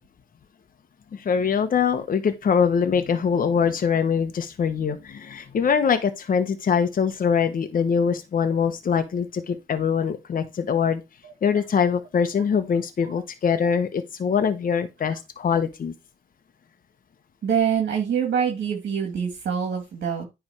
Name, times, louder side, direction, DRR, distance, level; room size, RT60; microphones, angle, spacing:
voice 1, 1.1-11.0 11.4-15.9, left 6 dB, 45° left, 1.2 m, -23 dB
voice 2, 17.4-20.3, right 7 dB, 60° right, 2.2 m, -25 dB
9.8 x 3.6 x 4.8 m
cardioid pair, 90°, 20 cm